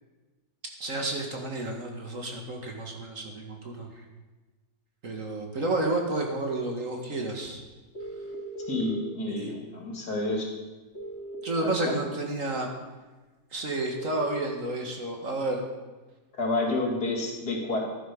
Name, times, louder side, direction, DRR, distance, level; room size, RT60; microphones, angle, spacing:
voice 1, 0.8-3.9 5.0-7.6 9.3-9.5 11.4-12.7 13.5-15.6, right 2 dB, 50° right, 1 dB, 2.3 m, -31 dB
sound 1, 8.0-9.0 11.0-12.0 14.0-14.4, right 1 dB, 35° left, 2.8 m, -39 dB
voice 2, 8.7-10.5 11.6-12.0 16.3-17.8, left 2 dB, 70° left, 0 dB, 3.2 m, -29 dB
15.0 x 11.5 x 5.5 m, 1.2 s
omnidirectional pair, 1.8 m